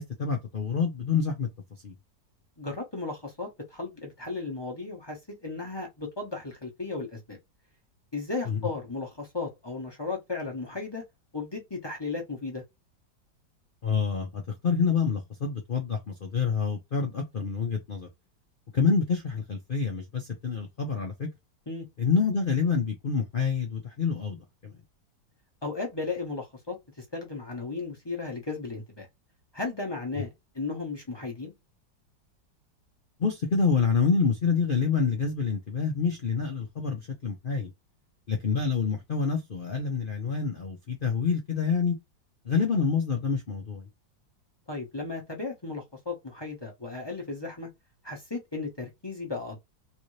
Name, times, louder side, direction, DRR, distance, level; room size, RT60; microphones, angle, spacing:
voice 1, 0.0-1.5 1.8-1.9 8.5-8.6 13.8-18.1 18.7-21.3 22.0-24.7 30.2-30.3 33.2-37.7 38.3-42.0 42.4-43.9, left 5 dB, 85° left, 0.4 m, -27 dB
voice 2, 2.6-7.4 8.1-11.0 11.3-12.6 21.7-21.9 25.6-29.1 29.5-31.5 44.7-47.7 48.0-49.6, left 3 dB, 20° left, 0.7 m, -35 dB
3.3 x 2.6 x 3.2 m
omnidirectional pair, 2.0 m